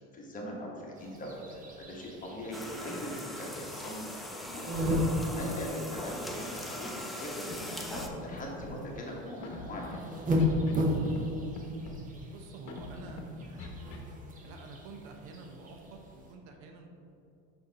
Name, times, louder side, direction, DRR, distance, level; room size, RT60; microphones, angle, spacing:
voice 1, 0.0-6.9 7.2-10.2, equal, 25° left, -2 dB, 1.3 m, -41 dB
sound 1, 0.9-16.3, left 1 dB, 25° right, 0.9 m, -36 dB
sound 2, 2.5-8.1, left 1 dB, ahead, 0.5 m, -41 dB
Scratching (performance technique), 7.5-7.6 7.8-8.0 8.3-8.7 9.4-10.0 10.4-10.8 11.1-11.3 11.5-12.0 12.7-13.2 13.6-14.0, left 4 dB, 50° left, 1.1 m, -42 dB
voice 2, 12.3-14.1 14.4-16.9, right 3 dB, 65° right, 4 dB, 0.9 m, -49 dB
5.6 x 5.5 x 4.1 m, 2.7 s
supercardioid pair, 125°, 32 cm